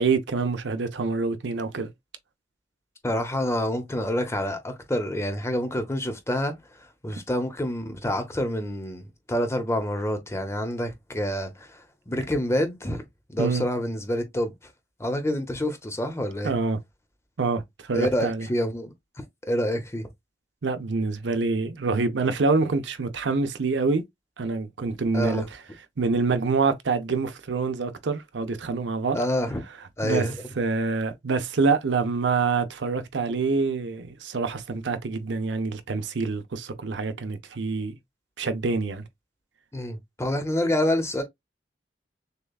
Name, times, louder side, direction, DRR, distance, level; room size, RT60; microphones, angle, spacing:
voice 1, 0.0-1.9 13.4-13.6 16.4-16.8 17.4-18.5 20.6-24.0 24.4-25.4 26.0-29.2 30.0-30.3 30.6-38.0 38.4-39.0, right 4 dB, 80° right, 0.6 m, -26 dB
voice 2, 3.0-6.5 7.0-13.0 13.3-14.5 15.0-16.5 17.9-18.9 19.5-20.1 25.1-25.5 29.1-29.6 30.0-30.3 39.7-41.2, equal, 15° left, 0.9 m, -27 dB
6.6 x 2.3 x 2.3 m
head